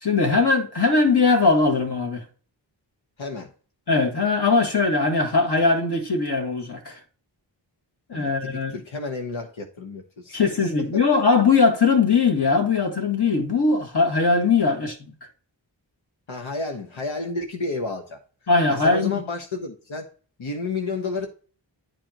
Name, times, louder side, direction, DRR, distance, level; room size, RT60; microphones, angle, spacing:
voice 1, 0.0-2.2 3.9-7.0 8.1-8.7 10.3-15.0 18.5-19.2, left 4 dB, 55° left, 2.0 m, -20 dB
voice 2, 3.2-3.5 8.1-11.0 14.7-14.8 16.3-18.2 18.7-20.1 20.4-21.3, left 3 dB, 90° left, 1.2 m, -31 dB
10.5 x 5.0 x 2.9 m
wide cardioid pair, 60°, 46 cm